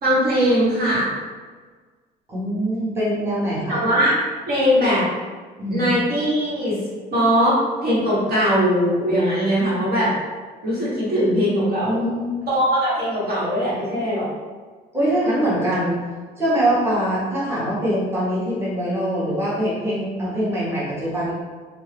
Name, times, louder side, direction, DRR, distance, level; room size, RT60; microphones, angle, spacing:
voice 1, 0.0-1.1 3.7-4.1 4.5-5.0 5.7-6.8 7.1-7.5 7.8-10.1 10.6-12.0 12.5-14.3, equal, 65° right, -8 dB, 1.5 m, -20 dB
voice 2, 2.3-3.8 5.6-5.9 11.9-12.3 14.9-16.0 16.4-21.3, right 1 dB, 15° right, -9 dB, 1.0 m, -23 dB
2.6 x 2.4 x 3.3 m, 1.5 s
cardioid pair, 110°, 17 cm